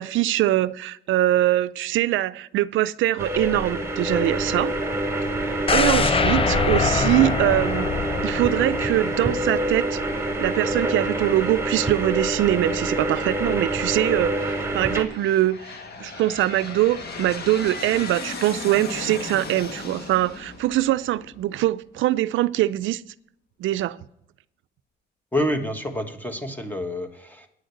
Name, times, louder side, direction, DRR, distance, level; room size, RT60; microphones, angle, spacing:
voice 1, 0.0-4.7 5.4-7.9 8.2-10.0 10.4-15.6 16.0-23.0 23.6-24.0, right 15 dB, 75° right, 0.4 m, -23 dB
sound 1, 3.2-15.0, right 1 dB, 15° right, 2.4 m, -26 dB
sound 2, 5.7-9.7 10.0-10.1, left 5 dB, 30° left, 0.6 m, -24 dB
Aircraft, 12.9-13.4 14.1-21.7, left 4 dB, 55° left, 1.7 m, -37 dB
voice 2, 25.3-27.5, left 1 dB, 10° left, 1.5 m, -28 dB
9.5 x 6.3 x 7.8 m
cardioid pair, 90°, 20 cm